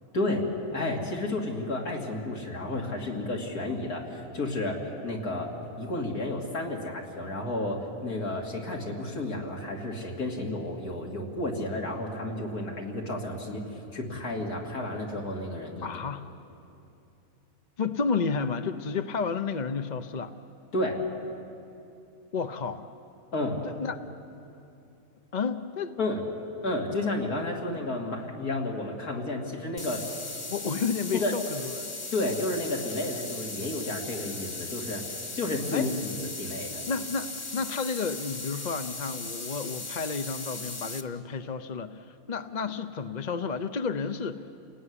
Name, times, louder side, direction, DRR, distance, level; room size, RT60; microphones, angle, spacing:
voice 1, 0.1-0.5 0.7-15.9 20.7-21.0 23.3-23.6 26.0-26.2 26.6-30.0 31.1-31.3 32.1-35.0 35.4-35.9 36.4-36.8, left 2 dB, 85° left, 0 dB, 3.5 m, -31 dB
voice 2, 15.8-16.3 17.8-20.3 22.3-22.9 23.6-24.0 25.3-26.0 30.5-31.9 35.7-35.9 36.9-44.5, left 5 dB, 40° left, 8 dB, 0.7 m, -31 dB
sound 1, 29.8-41.0, left 3 dB, 20° left, 1.1 m, -38 dB
29.0 x 18.5 x 9.8 m, 2.7 s
omnidirectional pair, 1.5 m